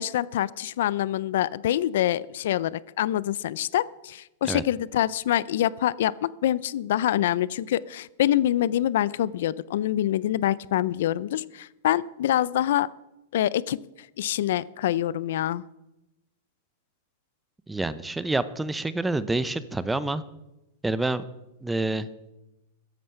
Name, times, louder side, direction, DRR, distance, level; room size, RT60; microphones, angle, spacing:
voice 1, 0.0-12.9 13.3-15.6, left 12 dB, 70° left, 21 dB, 0.5 m, -25 dB
voice 2, 17.7-20.2 20.8-21.2 21.6-22.1, right 2 dB, 5° right, 15 dB, 0.6 m, -27 dB
14.5 x 10.0 x 5.7 m, 0.95 s
supercardioid pair, 145°, 0 cm